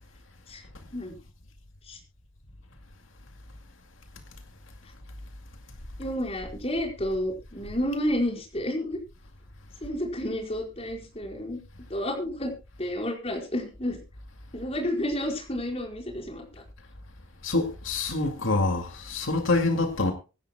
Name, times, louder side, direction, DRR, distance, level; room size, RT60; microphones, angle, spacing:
voice 1, 6.0-9.0 9.8-11.6 11.9-12.5 12.8-14.0 14.5-16.4, equal, 30° left, 4.7 m, -30 dB
voice 2, 17.4-20.1, left 2 dB, 80° left, 2.3 m, -26 dB
24.5 x 11.0 x 2.2 m
head